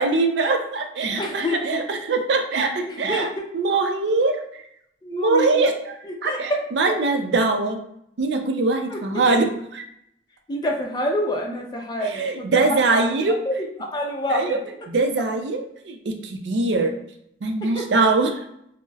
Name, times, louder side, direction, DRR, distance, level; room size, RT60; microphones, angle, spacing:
voice 1, 0.0-3.3 3.5-4.4 5.1-5.7 6.2-7.8 8.2-9.8 12.0-13.4 14.3-14.6 14.9-17.0 17.4-18.4, right 3 dB, 70° right, 5 dB, 0.4 m, -22 dB
voice 2, 1.2-1.8 2.9-3.4 5.0-5.6 6.0-6.6 8.9-9.0 10.5-12.5 12.9-13.1 13.5-14.6 17.7-17.8, left 1 dB, 25° left, 1 dB, 0.4 m, -27 dB
4.6 x 2.0 x 2.3 m, 0.74 s
head